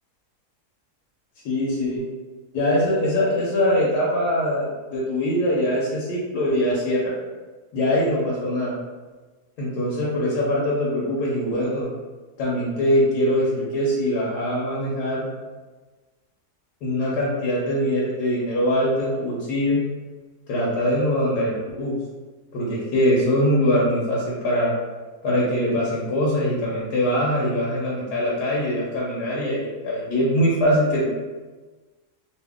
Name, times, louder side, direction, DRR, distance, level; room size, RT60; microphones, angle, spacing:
voice 1, 1.4-2.0 2.5-7.1 7.7-8.7 9.6-11.9 12.4-15.3 16.8-19.8 20.5-22.0 22.5-24.7 25.2-31.0, equal, 85° left, -5 dB, 1.3 m, -22 dB
2.8 x 2.7 x 3.5 m, 1.3 s
omnidirectional pair, 1.7 m